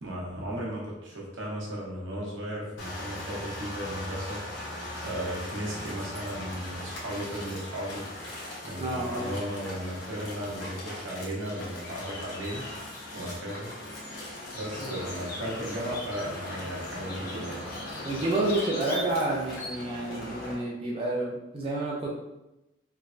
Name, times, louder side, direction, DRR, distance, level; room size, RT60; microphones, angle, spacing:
voice 1, 0.0-4.4 5.0-8.0 8.6-12.6 13.1-13.7 14.5-17.6, equal, 85° right, -4 dB, 0.9 m, -35 dB
sound 1, 2.8-20.5, left 1 dB, 85° left, 0.9 m, -39 dB
voice 2, 8.8-9.3 14.8-15.0 18.0-22.1, right 2 dB, 30° right, -3 dB, 0.4 m, -29 dB
sound 2, 11.4-19.0, left 2 dB, 50° left, 0.5 m, -44 dB
3.2 x 2.1 x 2.4 m, 0.94 s
head